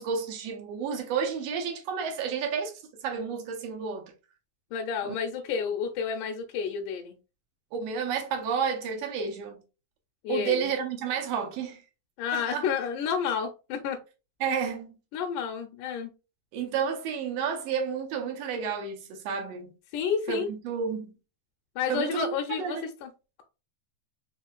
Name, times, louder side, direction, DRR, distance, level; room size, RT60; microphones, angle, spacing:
voice 1, 0.0-4.1 5.0-5.2 5.5-5.6 7.7-9.6 10.3-11.8 12.3-12.6 14.4-15.0 16.5-19.7 20.3-21.1 21.9-22.8, right 6 dB, 70° right, 1.6 m, -31 dB
voice 2, 4.7-7.2 10.2-10.7 12.2-14.0 15.1-16.1 19.9-20.5 21.8-23.1, left 6 dB, 90° left, 2.1 m, -30 dB
4.9 x 3.0 x 2.2 m
omnidirectional pair, 3.6 m